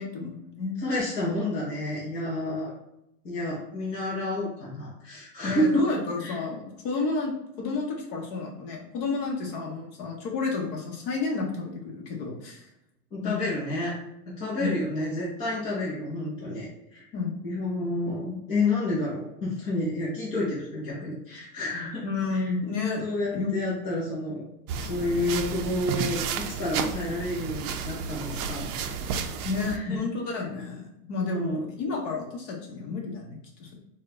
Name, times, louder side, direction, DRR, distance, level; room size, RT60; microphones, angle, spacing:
voice 1, 0.0-0.8 5.4-12.6 13.2-13.4 14.6-14.7 17.1-17.6 22.0-23.0 23.3-23.5 29.4-33.8, left 4 dB, 35° left, 0 dB, 0.8 m, -31 dB
voice 2, 0.8-2.7 3.2-5.9 6.2-6.4 13.1-13.9 14.4-17.1 17.4-22.0 22.3-22.5 23.0-24.4 24.8-26.2 26.6-29.4 29.7-30.0 31.2-31.7, left 1 dB, 15° left, -8 dB, 0.4 m, -30 dB
sound 1, 24.7-29.8, right 6 dB, 65° right, 0.6 m, -32 dB
4.2 x 2.2 x 3.6 m, 0.83 s
supercardioid pair, 160°, 47 cm